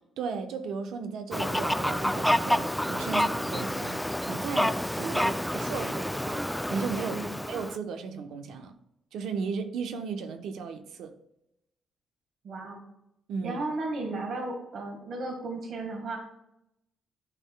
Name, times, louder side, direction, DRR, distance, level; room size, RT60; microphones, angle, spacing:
voice 1, 0.2-4.0 4.3-6.4 6.7-7.2 7.5-8.7 9.1-11.1 13.3-13.6, right 5 dB, 80° right, 0.9 m, -35 dB
Fowl, 1.3-7.8, left 1 dB, 5° left, 0.3 m, -29 dB
voice 2, 12.4-12.8 13.4-16.2, right 2 dB, 60° right, 1.6 m, -35 dB
12.5 x 4.7 x 2.3 m
cardioid pair, 90°, 0 cm